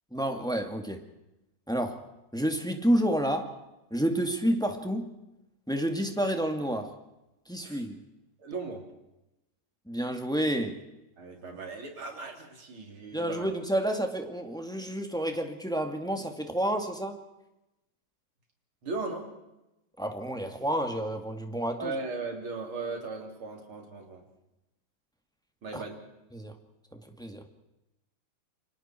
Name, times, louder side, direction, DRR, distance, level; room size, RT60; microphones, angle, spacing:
voice 1, 0.1-1.0 1.7-2.0 2.3-3.6 3.9-5.1 5.7-6.9 7.5-8.0 9.9-10.8 13.1-17.2 20.0-21.9 25.7-25.8 26.3-26.5 26.9-27.4, right 1 dB, ahead, 4 dB, 2.1 m, -29 dB
voice 2, 8.4-8.9 11.2-13.5 18.8-19.3 21.8-24.2 25.6-26.0, right 3 dB, 75° right, 2 dB, 4.4 m, -37 dB
29.0 x 25.0 x 4.6 m, 0.93 s
omnidirectional pair, 2.3 m